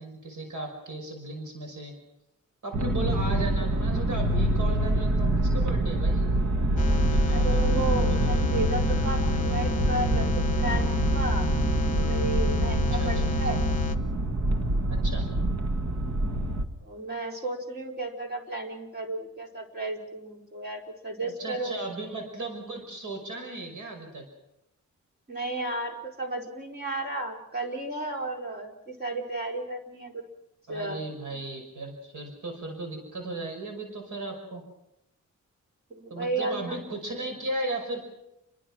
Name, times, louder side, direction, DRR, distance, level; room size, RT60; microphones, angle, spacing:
voice 1, 0.0-1.9 2.6-6.3 12.9-13.3 14.9-15.2 21.2-24.2 30.7-34.7 36.1-38.1, right 2 dB, 80° right, 3 dB, 5.7 m, -36 dB
sound 1, 2.7-16.6, right 1 dB, 60° right, 2.0 m, -26 dB
sound 2, 6.8-14.0, left 5 dB, 25° left, 1.5 m, -29 dB
voice 2, 7.3-10.3 10.6-11.5 11.8-13.6 16.8-21.8 25.3-30.2 30.7-31.0 35.9-36.8, right 2 dB, 30° right, 1 dB, 4.6 m, -33 dB
29.5 x 22.5 x 6.3 m, 0.90 s
wide cardioid pair, 160°, 31 cm